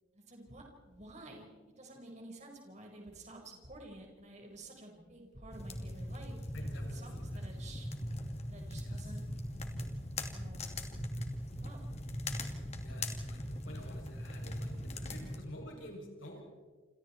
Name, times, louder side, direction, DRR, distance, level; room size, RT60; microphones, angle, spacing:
voice 1, 0.1-1.5 1.8-6.6 6.9-7.9 8.5-9.2 10.3-10.7 11.6-11.8, right 2 dB, 35° right, 2 dB, 4.7 m, -51 dB
sound 1, 5.5-15.4, left 1 dB, 35° left, 2.7 m, -40 dB
voice 2, 6.5-7.1 8.7-9.0 12.8-16.4, equal, 75° left, 0 dB, 6.9 m, -50 dB
28.5 x 28.0 x 4.4 m, 1.5 s
head